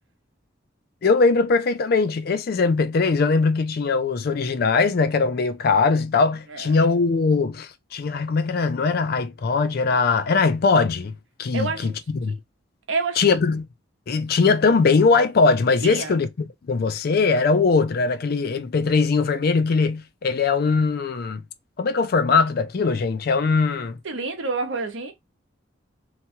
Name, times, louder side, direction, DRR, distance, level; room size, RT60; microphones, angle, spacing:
voice 1, 1.0-11.1 11.4-12.4 13.2-13.7 14.1-21.4 21.8-24.0, left 4 dB, 50° left, 0.4 m, -21 dB
voice 2, 6.5-6.9 11.5-12.0 12.3-12.4 12.9-13.2 15.8-16.2 24.0-25.1, right 4 dB, 70° right, 0.8 m, -28 dB
2.9 x 2.2 x 2.7 m
head